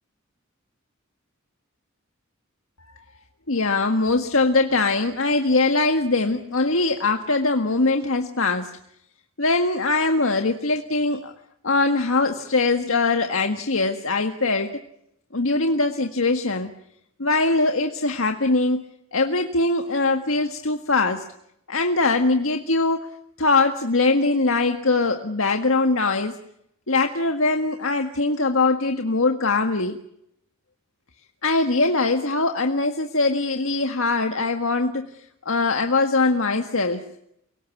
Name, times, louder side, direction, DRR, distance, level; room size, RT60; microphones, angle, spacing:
voice 1, 3.5-8.7 9.4-11.3 11.6-14.8 15.3-16.7 17.2-18.8 19.1-21.2 21.7-23.1 23.4-26.4 26.9-30.0 31.4-37.0, left 3 dB, 75° left, 5 dB, 1.7 m, -22 dB
28.5 x 18.5 x 8.5 m, 0.78 s
head